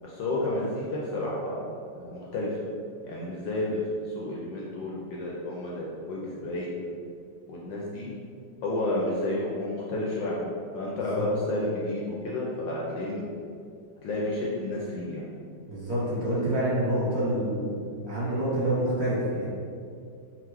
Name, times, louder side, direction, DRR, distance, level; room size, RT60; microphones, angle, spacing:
voice 1, 0.0-1.6 1.9-2.6 3.0-6.7 7.5-8.1 8.6-13.3 14.0-15.2, left 1 dB, 70° left, -4 dB, 1.1 m, -31 dB
voice 2, 15.7-19.5, right 1 dB, 50° right, -9 dB, 1.3 m, -27 dB
4.5 x 2.1 x 4.6 m, 2.4 s
omnidirectional pair, 2.4 m